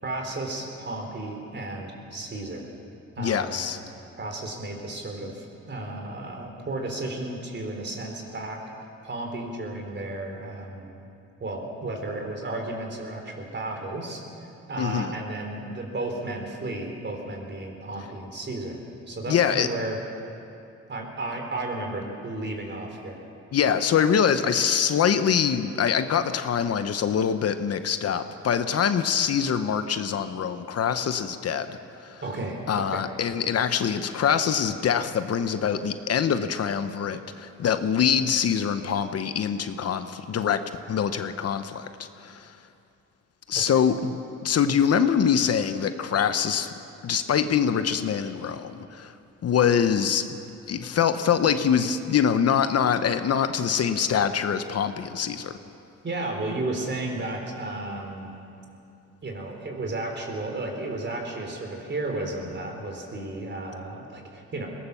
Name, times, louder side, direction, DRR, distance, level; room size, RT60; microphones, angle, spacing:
voice 1, 0.0-2.6 3.2-3.7 4.2-8.6 9.0-11.0 11.4-14.2 14.7-18.8 19.1-20.0 20.9-23.2 32.2-33.0 43.7-43.8 56.0-58.3 59.2-64.7, right 2 dB, 35° right, 2 dB, 4.2 m, -33 dB
voice 2, 3.2-3.8 14.8-15.2 19.3-19.7 23.5-32.2 32.7-40.6 40.9-41.9 42.2-42.5 43.5-44.2 44.4-46.7 47.0-49.1 49.4-50.4 50.7-55.5, left 7 dB, 55° left, 10 dB, 0.9 m, -24 dB
21.0 x 18.0 x 7.0 m, 2.7 s
cardioid pair, 90°, 30 cm